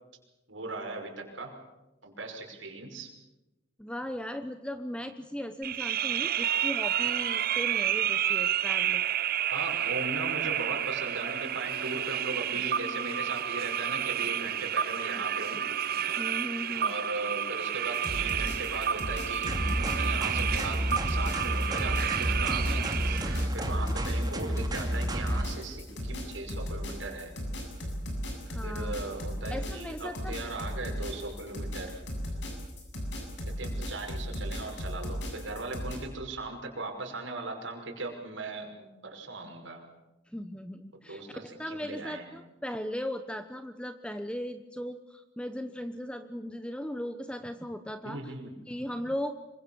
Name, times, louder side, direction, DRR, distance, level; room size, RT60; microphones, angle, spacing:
voice 1, 0.5-1.5 2.0-3.1 9.4-15.6 16.8-23.3 23.5-27.3 28.6-32.0 33.6-39.8 41.1-42.3 48.0-48.6, right 2 dB, 80° right, 2 dB, 5.8 m, -38 dB
voice 2, 3.8-9.1 10.4-10.5 16.0-16.9 28.5-28.9 29.5-30.3 40.3-48.3 48.7-49.3, equal, 5° left, 9 dB, 0.9 m, -37 dB
sound 1, 5.6-23.5, right 10 dB, 50° right, 0.8 m, -30 dB
sound 2, 17.9-36.0, equal, 65° left, 8.0 m, -36 dB
sound 3, 19.5-25.4, equal, 20° right, 2.5 m, -31 dB
26.0 x 24.0 x 7.2 m, 1.0 s
head